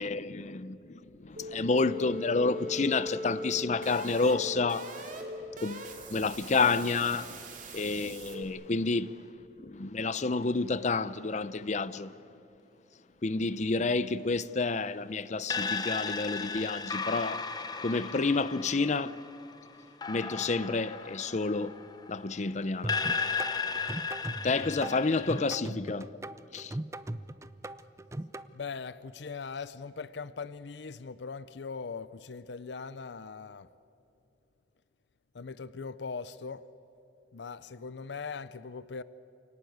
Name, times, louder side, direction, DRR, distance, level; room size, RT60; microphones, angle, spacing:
voice 1, 0.0-5.2 5.6-7.4 7.7-9.2 9.6-12.2 13.2-17.5 17.8-19.2 20.1-21.8 22.1-23.0 24.4-26.1 26.5-26.8, left 3 dB, 40° left, 0.6 m, -30 dB
voice 2, 1.0-1.5 5.5-5.8 7.7-7.9 28.5-33.7 35.3-36.6 37.3-39.0, left 5 dB, 80° left, 0.6 m, -41 dB
sound 1, 1.4-8.4, equal, 50° right, 2.8 m, -40 dB
sound 2, 15.5-22.3 22.9-25.4, left 5 dB, 25° left, 1.0 m, -35 dB
sound 3, 22.8-28.5, right 1 dB, 15° right, 0.5 m, -39 dB
28.0 x 18.5 x 9.4 m
head